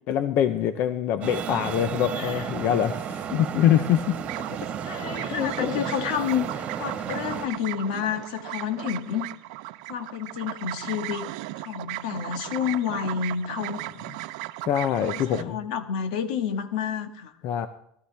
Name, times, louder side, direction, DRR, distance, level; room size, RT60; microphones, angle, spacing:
voice 1, 0.1-4.2 5.3-5.8 14.6-15.6 17.4-17.7, left 10 dB, 50° left, 12 dB, 0.7 m, -24 dB
Traffic noise roadway noise, 1.2-7.5, right 7 dB, 30° right, 1.5 m, -33 dB
voice 2, 2.1-2.5 4.8-9.3 9.9-11.3 11.5-13.8 15.1-17.3, left 8 dB, 80° left, 8 dB, 1.7 m, -30 dB
sound 1, 4.3-15.4, right 19 dB, 65° right, 0.6 m, -37 dB
17.5 x 13.0 x 3.4 m, 0.73 s
supercardioid pair, 140°, 4 cm